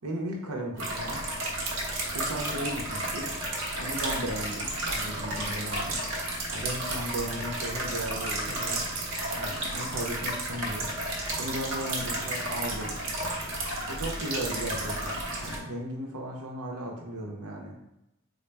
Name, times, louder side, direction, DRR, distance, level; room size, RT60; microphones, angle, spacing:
voice 1, 0.0-1.2 2.1-3.3 3.8-6.0 6.5-8.8 9.3-10.9 11.4-13.0 13.9-17.8, right 1 dB, 90° right, 0 dB, 0.8 m, -36 dB
sound 1, 0.8-15.6, right 1 dB, 60° right, 0.9 m, -32 dB
4.1 x 2.1 x 3.4 m, 0.88 s
head